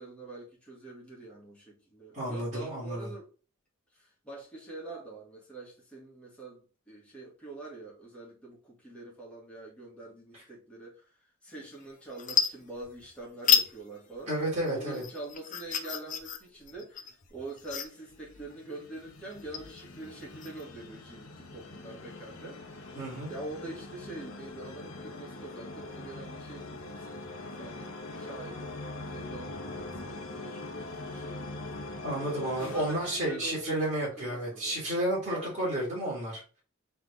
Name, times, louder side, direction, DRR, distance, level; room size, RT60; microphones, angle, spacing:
voice 1, 0.0-3.3 3.9-11.1 11.4-14.3 14.7-22.6 23.3-27.3 27.6-31.7 32.5-34.8 35.3-35.7, right 2 dB, 5° left, 1.8 m, -45 dB
voice 2, 2.1-3.1 14.3-15.0 23.0-23.3 32.0-36.4, right 1 dB, 35° right, 2.1 m, -31 dB
sound 1, 11.6-11.8 12.1-13.1 13.4-13.7 14.1-20.6, left 7 dB, 40° left, 0.6 m, -31 dB
sound 2, 17.9-34.0, left 2 dB, 75° left, 0.9 m, -43 dB
3.8 x 3.4 x 3.5 m
head